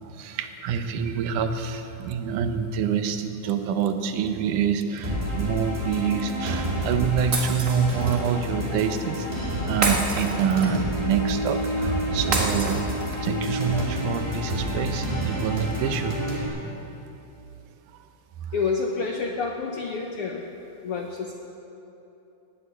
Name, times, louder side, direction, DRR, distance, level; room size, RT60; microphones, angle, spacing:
voice 1, 0.0-9.3 9.6-12.9 13.2-16.2, right 7 dB, 75° right, 8 dB, 2.3 m, -26 dB
sound 1, 5.0-16.5, equal, 15° right, 2.3 m, -29 dB
Shatter, 7.3-8.2 9.8-10.9 12.3-13.3, right 3 dB, 40° right, 1.3 m, -28 dB
voice 2, 18.5-20.4 20.8-21.3, left 4 dB, 75° left, 1 dB, 1.3 m, -28 dB
19.0 x 8.6 x 8.4 m, 3.0 s
omnidirectional pair, 3.7 m